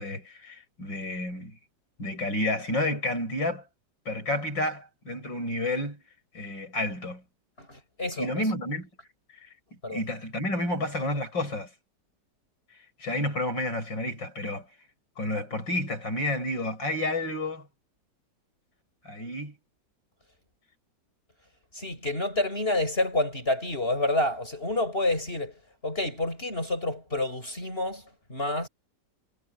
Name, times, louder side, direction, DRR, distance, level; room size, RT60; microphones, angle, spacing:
voice 1, 0.0-1.6 2.0-3.6 4.1-6.0 6.3-7.2 8.2-8.9 9.4-9.5 9.9-11.7 13.0-14.7 15.2-17.7 19.1-19.6, left 1 dB, 80° left, 8.8 m, -30 dB
voice 2, 7.6-8.5 9.8-10.0 21.7-28.0 28.3-28.7, left 2 dB, 30° left, 7.1 m, -29 dB
omnidirectional pair, 2.0 m